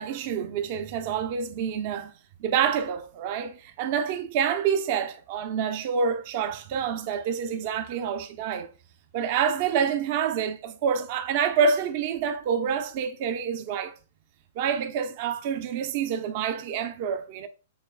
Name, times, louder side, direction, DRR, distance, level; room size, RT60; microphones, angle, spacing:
voice 1, 0.0-2.1 2.4-8.7 9.1-13.9 14.6-17.5, right 7 dB, 45° right, 0.6 m, -27 dB
7.1 x 3.1 x 2.2 m
hypercardioid pair, 145°, 0 cm